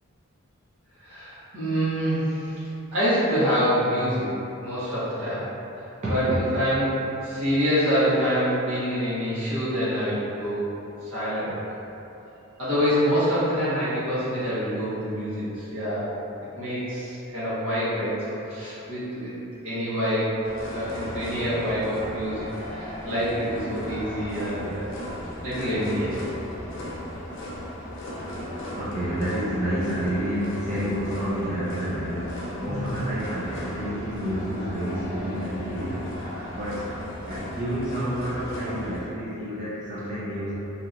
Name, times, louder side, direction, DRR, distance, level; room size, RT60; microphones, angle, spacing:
voice 1, 1.0-2.6 2.9-4.3 4.6-5.4 6.1-6.2 6.5-6.9 7.2-10.6 11.0-11.5 12.6-16.1 16.6-19.3 19.6-20.3 20.7-22.5 22.7-24.9 25.4-26.3, equal, 65° right, -12 dB, 1.4 m, -26 dB
voice 2, 6.0-6.4 7.3-7.4 28.8-36.1 36.5-36.9 37.3-40.5, equal, 35° right, -10 dB, 0.4 m, -29 dB
sound 1, 20.4-39.0, equal, 60° left, 0.5 m, -36 dB
3.1 x 2.8 x 2.5 m, 2.9 s
head